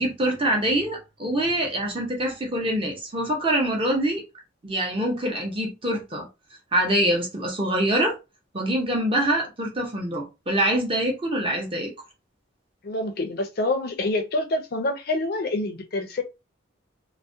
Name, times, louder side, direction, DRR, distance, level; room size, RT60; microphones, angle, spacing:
voice 1, 0.0-4.2 4.6-6.3 6.7-8.1 8.5-11.9, right 1 dB, 25° right, 0.7 m, -25 dB
voice 2, 12.8-16.2, left 2 dB, 50° left, 0.4 m, -26 dB
2.3 x 2.1 x 2.6 m
head